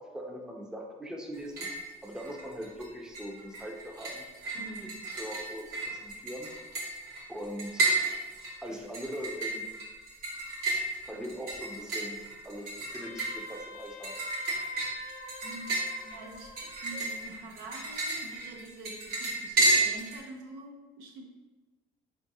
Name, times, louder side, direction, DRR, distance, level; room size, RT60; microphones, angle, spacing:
voice 1, 0.0-1.7 2.0-4.3 4.6-6.5 7.3-7.8 8.6-9.7 11.0-14.2, equal, 5° right, 1 dB, 0.5 m, -41 dB
sound 1, 1.3-1.9 2.2-2.9 3.1-20.2, right 2 dB, 65° right, 1.0 m, -32 dB
voice 2, 4.5-5.0 15.4-21.2, right 2 dB, 90° right, 2 dB, 0.6 m, -46 dB
Wind instrument woodwind instrument, 13.0-17.2, left 2 dB, 60° left, 0.5 m, -46 dB
3.8 x 3.6 x 2.7 m, 1.2 s
cardioid pair, 110°, 17 cm